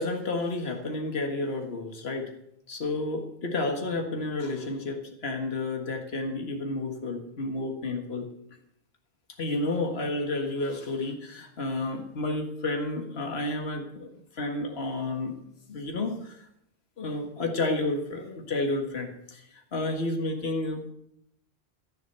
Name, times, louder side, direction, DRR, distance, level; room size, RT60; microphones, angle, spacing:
voice 1, 0.0-2.3 2.7-8.3 9.4-14.1 14.4-15.4 15.7-16.4 17.0-19.4 19.7-20.9, left 2 dB, 70° left, 3 dB, 1.9 m, -31 dB
14.5 x 7.4 x 8.0 m, 0.75 s
omnidirectional pair, 1.1 m